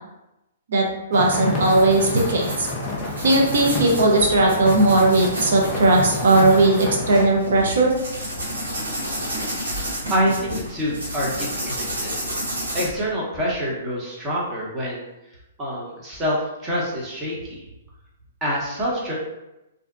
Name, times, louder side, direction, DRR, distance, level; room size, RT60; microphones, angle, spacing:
voice 1, 0.7-2.7 3.2-8.0, right 2 dB, 70° right, 0 dB, 0.7 m, -18 dB
sound 1, 1.1-7.2, left 2 dB, 20° left, 0.5 m, -30 dB
sound 2, 1.5-12.8, equal, 90° right, 1.1 m, -31 dB
voice 2, 10.1-12.1 12.7-15.1 15.6-16.4 16.6-17.6 18.4-19.1, equal, 20° right, -5 dB, 0.9 m, -26 dB
2.7 x 2.1 x 2.4 m, 0.94 s
hypercardioid pair, 130°, 0 cm